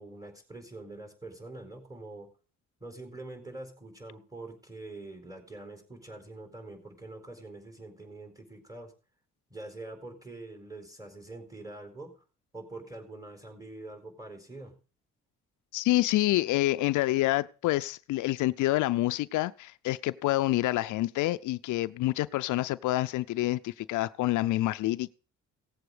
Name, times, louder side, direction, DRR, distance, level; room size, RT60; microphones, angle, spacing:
voice 1, 0.0-2.3 2.8-8.9 9.5-12.1 12.5-14.8, right 2 dB, 10° right, 4.3 m, -45 dB
voice 2, 15.7-25.1, left 17 dB, 80° left, 0.5 m, -27 dB
17.0 x 7.8 x 4.9 m
cardioid pair, 90°, 30 cm